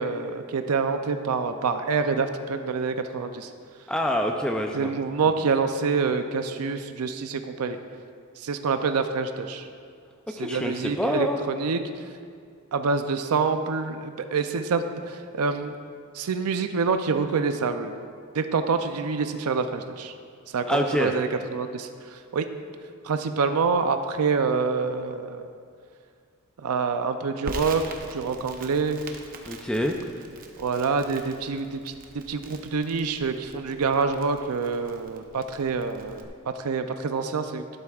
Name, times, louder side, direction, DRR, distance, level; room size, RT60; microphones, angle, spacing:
voice 1, 0.0-3.5 4.7-7.8 8.4-9.7 10.3-11.8 12.7-15.7 16.1-18.0 18.3-20.1 20.5-22.5 23.0-25.5 26.6-29.0 30.6-36.3 36.5-37.6, right 5 dB, 85° right, 8 dB, 0.5 m, -26 dB
voice 2, 3.9-4.9 10.4-11.4 20.7-21.1 29.5-30.0, equal, 5° left, 2 dB, 0.4 m, -26 dB
Crackle, 27.4-36.2, right 2 dB, 40° right, 0.8 m, -43 dB
12.0 x 12.0 x 2.4 m, 2.2 s
head